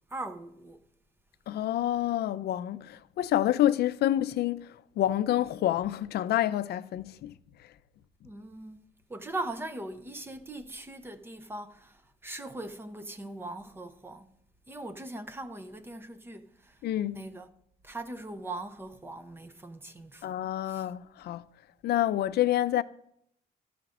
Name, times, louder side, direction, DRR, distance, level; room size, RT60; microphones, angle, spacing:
voice 1, 0.1-0.8 8.2-12.0 12.2-14.4 14.7-16.8 17.1-17.5 17.8-20.3 20.7-20.9, right 2 dB, 15° right, 0.5 m, -40 dB
voice 2, 1.5-4.7 5.0-7.3 16.8-17.2 20.2-21.4 21.8-22.8, left 12 dB, 70° left, 0.4 m, -28 dB
12.5 x 5.0 x 5.9 m
cardioid pair, 175°, 17 cm